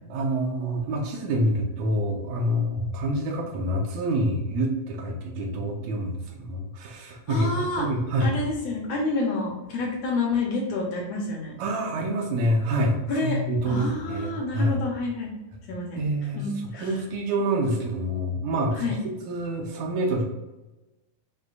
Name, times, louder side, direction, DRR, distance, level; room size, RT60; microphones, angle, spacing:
voice 1, 0.1-8.3 11.6-14.7 15.9-16.4 16.8-18.9 19.3-20.2, right 1 dB, 75° right, 0 dB, 1.9 m, -27 dB
voice 2, 7.3-7.9 8.2-11.5 13.1-13.4 13.7-15.3 15.7-16.0 16.3-16.9 18.8-19.0, left 3 dB, 70° left, -1 dB, 1.8 m, -28 dB
6.4 x 2.7 x 2.4 m, 1.0 s
omnidirectional pair, 3.4 m